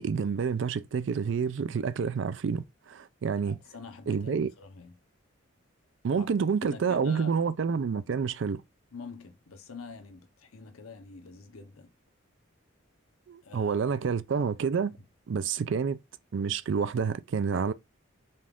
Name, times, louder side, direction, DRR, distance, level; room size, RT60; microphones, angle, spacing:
voice 1, 0.0-3.6 4.1-4.5 6.0-8.6 13.3-14.9 15.3-16.0 16.3-17.7, right 6 dB, 60° right, 0.4 m, -28 dB
voice 2, 3.4-4.9 6.2-6.3 6.6-7.3 8.9-11.9 13.4-14.1 15.0-15.1 15.6-15.7, left 4 dB, 90° left, 0.8 m, -45 dB
5.2 x 2.4 x 3.5 m
head